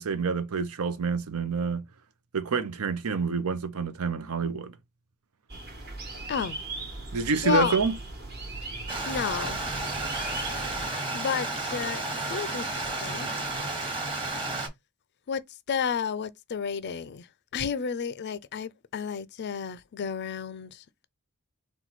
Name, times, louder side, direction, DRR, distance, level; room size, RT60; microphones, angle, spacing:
voice 1, 0.0-1.8 2.3-4.7 7.1-7.9, right 4 dB, 85° right, 0.6 m, -28 dB
sound 1, 5.5-10.9, right 2 dB, 50° right, 1.3 m, -38 dB
voice 2, 7.4-7.8 9.0-9.6 11.1-12.0 12.3-13.3 15.3-15.4 15.7-17.3 17.5-21.1, left 7 dB, 50° left, 0.4 m, -31 dB
Stream, 8.9-14.7, right 2 dB, 25° right, 1.2 m, -32 dB
4.4 x 2.3 x 4.0 m
head